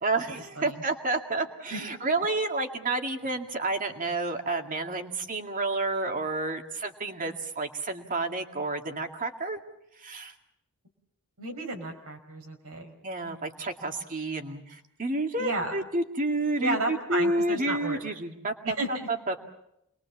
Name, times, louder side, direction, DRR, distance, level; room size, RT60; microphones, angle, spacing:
voice 1, 0.0-9.6 10.0-10.3 13.0-19.4, right 2 dB, 35° right, 4 dB, 2.2 m, -30 dB
voice 2, 11.4-12.9 15.4-15.8 16.6-18.0 18.6-18.9, right 2 dB, 80° right, 3 dB, 4.9 m, -32 dB
28.0 x 22.0 x 7.3 m, 0.82 s
head